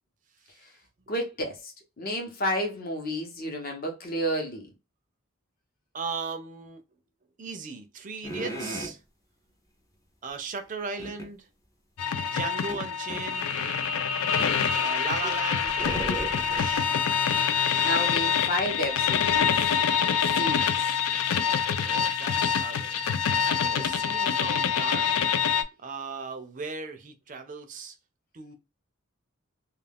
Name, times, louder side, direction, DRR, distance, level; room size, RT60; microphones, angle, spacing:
voice 1, 1.1-4.7 17.8-19.6 20.4-20.9 23.7-23.9, equal, 45° left, 0.8 m, -31 dB
voice 2, 5.9-6.8 7.4-9.0 10.2-11.5 12.3-13.5 14.8-17.0 21.6-23.0 23.5-25.3 25.8-28.0 28.3-28.5, right 4 dB, 40° right, 0.4 m, -37 dB
sound 1, 8.2-9.0 11.0-11.3 12.7-13.3 14.4-14.6 15.2-16.9, right 1 dB, 15° left, 0.5 m, -36 dB
sound 2, 12.0-25.6, left 7 dB, 85° left, 0.4 m, -26 dB
2.3 x 2.3 x 3.4 m
head